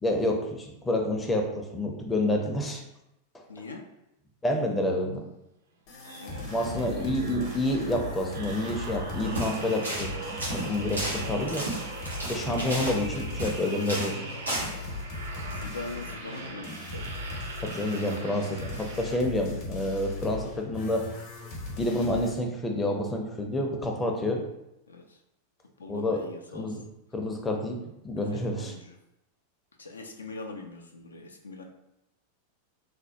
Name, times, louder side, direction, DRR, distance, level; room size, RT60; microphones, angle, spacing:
voice 1, 0.0-2.8 3.3-3.4 4.4-5.2 6.5-10.1 10.5-11.6 12.3-14.2 17.6-21.0 21.7-24.5 25.9-26.3 26.5-26.8 27.1-27.8 28.0-28.7, left 1 dB, 15° left, 2 dB, 0.5 m, -28 dB
voice 2, 3.5-3.9 6.1-7.1 15.5-17.1 17.9-18.3 24.9-25.2 25.8-26.8 28.2-29.0 29.8-31.6, left 3 dB, 75° left, 2 dB, 0.4 m, -42 dB
sound 1, 5.9-22.4, left 2 dB, 45° left, 0.8 m, -39 dB
sound 2, 6.0-19.6 20.1-20.3, right 3 dB, 65° right, 0.4 m, -41 dB
sound 3, 9.2-9.5 9.8-10.1 10.4-13.6 13.9-14.2 14.5-14.7, right 1 dB, 80° right, 1.1 m, -32 dB
3.2 x 2.1 x 2.7 m, 0.86 s
figure-of-eight pair, 90°, 0 cm